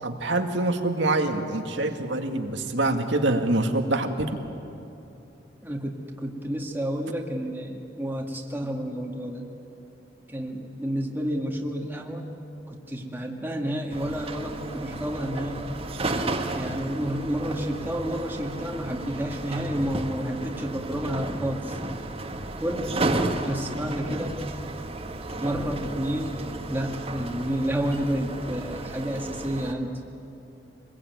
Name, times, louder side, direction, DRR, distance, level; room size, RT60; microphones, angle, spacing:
voice 1, 0.0-4.3, right 2 dB, 70° right, 5 dB, 2.0 m, -25 dB
voice 2, 5.6-9.5 10.3-12.3 12.7-15.7 16.5-21.8 22.6-23.0 23.4-24.4 25.4-29.9, equal, 10° right, 0 dB, 2.0 m, -30 dB
sound 1, 13.9-29.7, right 2 dB, 35° right, 1.6 m, -33 dB
25.0 x 21.0 x 9.4 m, 2.9 s
head